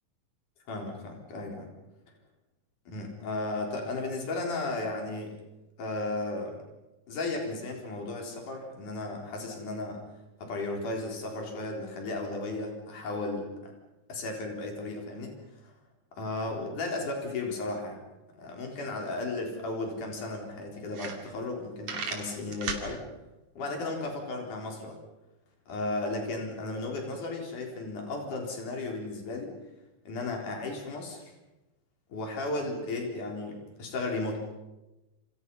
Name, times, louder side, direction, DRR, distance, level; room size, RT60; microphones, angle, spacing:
voice 1, 0.7-1.7 2.9-5.4 5.8-6.6 7.1-10.0 10.4-13.7 14.1-15.3 15.6-15.7 16.2-18.0 18.4-23.0 23.6-25.0 25.7-29.5 30.1-31.3 32.1-34.4, left 2 dB, 70° left, 1 dB, 5.6 m, -34 dB
sound 1, 19.9-20.0 20.5-20.6 20.9-21.6 21.8-22.9, right 5 dB, 55° right, 3.7 m, -35 dB
28.5 x 28.0 x 5.6 m, 1.0 s
omnidirectional pair, 3.7 m